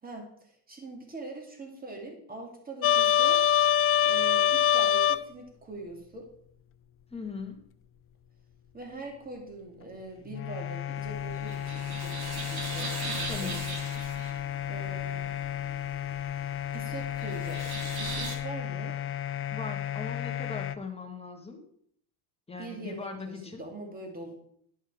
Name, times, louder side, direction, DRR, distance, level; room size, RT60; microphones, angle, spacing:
voice 1, 0.0-3.4 4.0-6.3 8.7-13.8 14.7-15.3 16.7-19.0 22.6-24.4, right 2 dB, 20° right, 2 dB, 2.3 m, -43 dB
sound 1, 2.8-5.2 10.3-20.7, left 10 dB, 30° left, 0.4 m, -28 dB
voice 2, 7.1-7.6 13.3-13.6 19.5-21.6 22.5-23.6, left 4 dB, 10° left, 2 dB, 1.5 m, -39 dB
sound 2, 11.0-18.4, right 3 dB, 50° right, 2.3 m, -40 dB
11.0 x 5.6 x 4.8 m, 0.67 s
cardioid pair, 130°, 48 cm